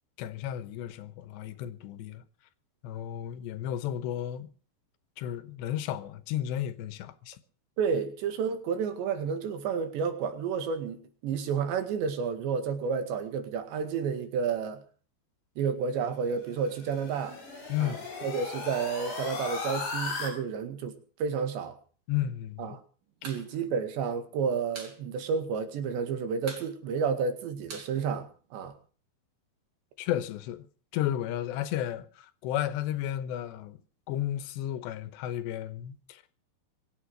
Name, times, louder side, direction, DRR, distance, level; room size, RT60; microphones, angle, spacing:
voice 1, 0.2-2.2 2.8-4.5 5.2-7.4 17.7-18.0 22.1-22.8 23.2-23.3 30.0-30.6 30.9-33.8 34.1-36.2, left 11 dB, 85° left, 3.2 m, -33 dB
voice 2, 7.8-14.8 15.6-17.4 17.8-18.0 18.2-21.8 22.6-22.8 23.2-28.7, right 6 dB, 85° right, 4.3 m, -31 dB
sound 1, 16.3-20.3, left 4 dB, 55° left, 6.8 m, -37 dB
sound 2, 23.1-23.5 23.7-23.8 24.1-25.0 25.3-25.4 25.7-26.1 26.4-28.8, right 4 dB, 50° right, 5.3 m, -44 dB
23.5 x 8.8 x 6.3 m
omnidirectional pair, 4.9 m